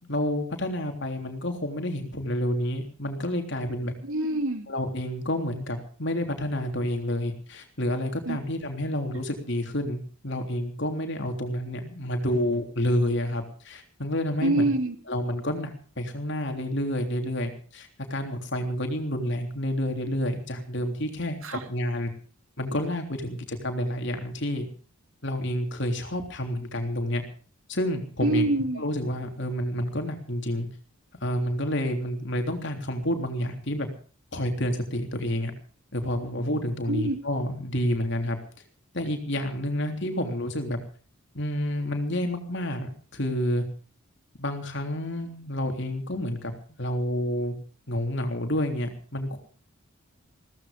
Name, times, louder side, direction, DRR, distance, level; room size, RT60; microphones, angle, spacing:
voice 1, 0.0-3.9 4.7-14.7 15.1-22.1 22.6-24.7 25.2-27.2 27.7-28.5 28.7-30.7 31.2-33.9 34.3-35.5 35.9-38.4 38.9-40.8 41.3-43.6 44.4-46.5 46.8-47.6 47.9-49.4, left 1 dB, 55° left, 5 dB, 3.4 m, -29 dB
voice 2, 4.0-4.7 8.3-8.4 14.4-14.9 21.4-21.6 28.2-28.8 36.9-37.2, right 2 dB, 75° right, 7 dB, 2.8 m, -25 dB
17.0 x 14.5 x 5.2 m, 0.41 s
head